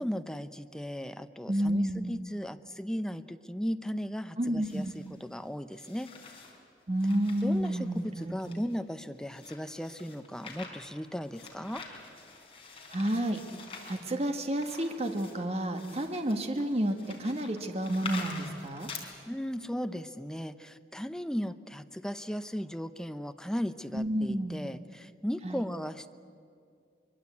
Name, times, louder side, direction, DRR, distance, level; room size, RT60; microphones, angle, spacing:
voice 1, 0.0-6.1 7.4-11.8 19.3-26.1, equal, 5° left, 10 dB, 0.7 m, -36 dB
voice 2, 1.5-2.2 4.4-5.0 6.9-8.6 12.9-13.4 13.8-18.9 23.9-24.6 25.4-25.6, right 1 dB, 35° right, 5 dB, 1.6 m, -30 dB
sound 1, 4.6-5.2 5.7-6.6 7.0-19.0, left 4 dB, 30° left, 4.1 m, -46 dB
24.0 x 23.0 x 8.5 m, 2.3 s
head